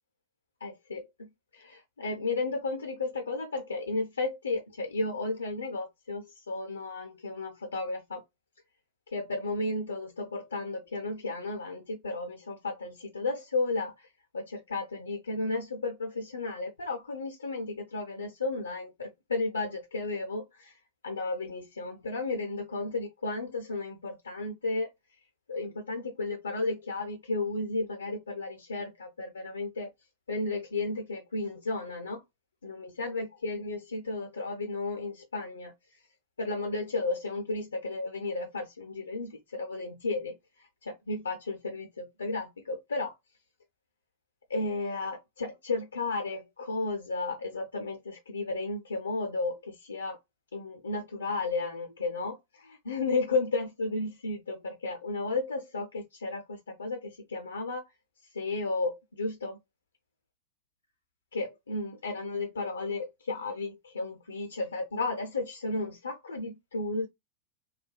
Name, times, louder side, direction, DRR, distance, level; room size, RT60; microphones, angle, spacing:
voice 1, 0.6-8.2 9.1-14.1 14.3-20.8 21.0-24.9 25.5-29.9 30.3-32.2 32.6-35.7 36.4-43.1 44.5-50.2 50.5-57.9 58.3-59.6 61.3-67.1, left 3 dB, 75° left, 0.4 m, -33 dB
3.2 x 2.2 x 2.2 m
figure-of-eight pair, 90°, 0 cm